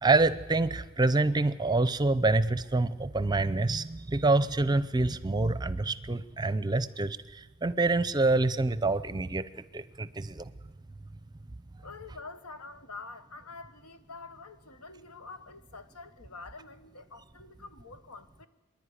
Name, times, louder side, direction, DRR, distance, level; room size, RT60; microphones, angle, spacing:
voice 1, 0.0-10.5, right 2 dB, 20° right, 0.6 m, -27 dB
voice 2, 11.8-18.5, left 3 dB, 85° left, 1.2 m, -46 dB
25.0 x 11.0 x 9.8 m
head